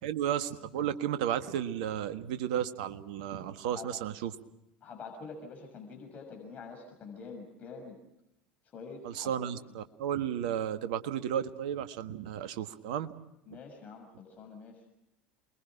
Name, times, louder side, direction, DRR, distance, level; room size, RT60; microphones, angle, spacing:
voice 1, 0.0-4.3 9.0-13.1, right 10 dB, 65° right, 10 dB, 1.6 m, -33 dB
voice 2, 4.8-8.0 8.7-9.3 13.5-14.8, left 4 dB, 35° left, 2 dB, 6.6 m, -46 dB
28.5 x 22.0 x 6.0 m, 0.85 s
figure-of-eight pair, 70°, 4 cm